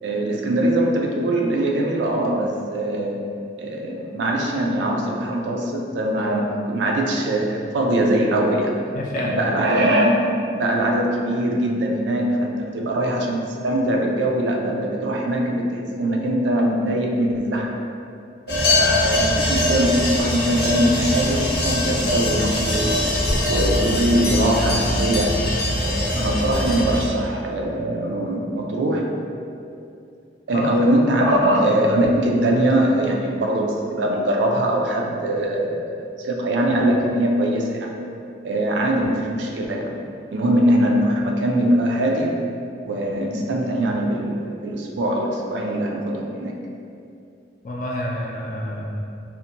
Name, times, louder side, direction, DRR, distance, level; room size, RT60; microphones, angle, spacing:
voice 1, 0.0-3.2 3.6-8.8 9.2-10.2 10.5-17.8 18.5-23.0 23.4-25.4 25.8-29.1 30.5-35.9 36.2-37.9 38.4-39.9 40.3-42.3 42.8-46.5, right 1 dB, 90° right, 0 dB, 0.4 m, -22 dB
voice 2, 8.9-9.4 30.5-30.7 47.6-49.0, left 1 dB, 45° left, -2 dB, 0.3 m, -28 dB
sound 1, 18.5-27.1, left 1 dB, 75° left, 0.7 m, -22 dB
2.5 x 2.1 x 2.8 m, 2.5 s
head